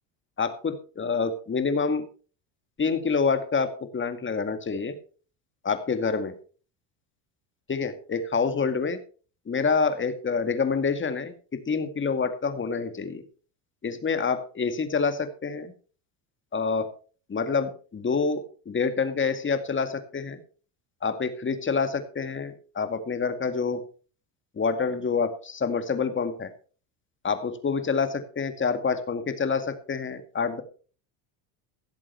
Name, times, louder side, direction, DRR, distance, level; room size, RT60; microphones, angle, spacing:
voice 1, 0.4-2.0 2.8-3.7 3.9-5.0 5.6-6.3 7.7-9.0 9.5-11.3 11.7-13.2 13.8-15.7 16.5-16.9 17.3-18.4 18.7-20.4 21.0-23.8 24.6-26.5 27.2-30.6, left 5 dB, 25° left, 9 dB, 2.1 m, -27 dB
16.5 x 7.5 x 4.5 m, 0.39 s
supercardioid pair, 105°, 46 cm